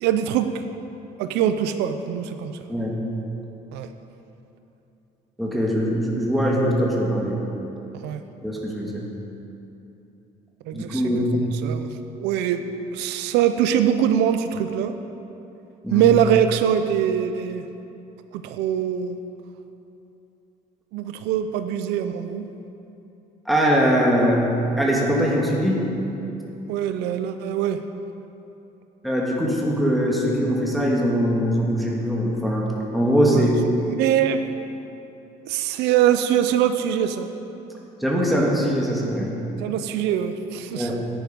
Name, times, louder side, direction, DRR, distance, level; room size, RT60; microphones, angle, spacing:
voice 1, 0.0-0.6 1.2-2.5 3.7-3.9 8.0-8.2 10.7-11.2 11.6-12.6 12.9-14.9 15.9-17.6 18.3-19.2 20.9-22.4 26.7-27.8 33.3-33.6 33.9-34.5 35.5-37.3 39.6-40.9, right 10 dB, 90° right, 8 dB, 0.5 m, -23 dB
voice 2, 5.4-7.4 8.4-9.0 10.7-11.3 15.8-16.1 23.5-24.4 24.8-25.8 29.0-32.7 32.9-33.5 38.0-39.3 40.7-41.1, equal, ahead, -4 dB, 1.8 m, -22 dB
10.5 x 9.4 x 5.3 m, 2.9 s
cardioid pair, 110°, 17 cm